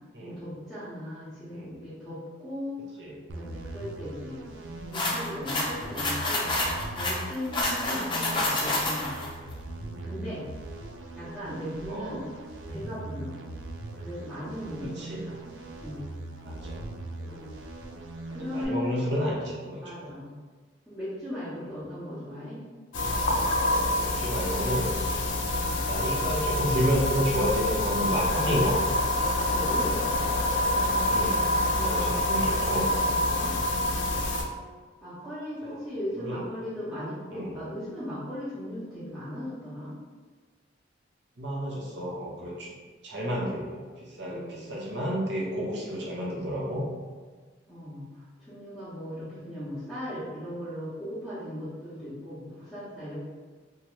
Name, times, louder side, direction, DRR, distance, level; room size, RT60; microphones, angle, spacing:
voice 1, 0.2-2.8 3.3-4.4 4.9-6.5 6.9-9.5 10.0-10.4 11.1-12.2 12.7-13.3 14.0-15.5 15.8-16.0 17.3-17.5 18.3-19.1 19.8-20.3 20.9-22.6 29.3-30.0 30.7-31.6 33.2-33.6 35.0-40.0 44.2-44.7 47.7-53.2, left 1 dB, ahead, -15 dB, 0.9 m, -38 dB
sound 1, 3.3-18.7, right 2 dB, 85° right, 0.4 m, -40 dB
sound 2, 4.9-9.3, left 2 dB, 25° left, 0.5 m, -28 dB
voice 2, 14.8-15.2 16.4-16.8 17.2-17.5 18.5-20.1 24.0-25.2 25.9-29.0 30.7-30.8 31.1-32.9 35.6-35.8 36.2-36.4 37.3-37.5 41.4-42.7 43.0-46.8, equal, 65° right, -4 dB, 0.8 m, -31 dB
sound 3, 22.9-34.4, left 1 dB, 80° left, 0.4 m, -26 dB
2.7 x 2.4 x 3.0 m, 1.4 s
head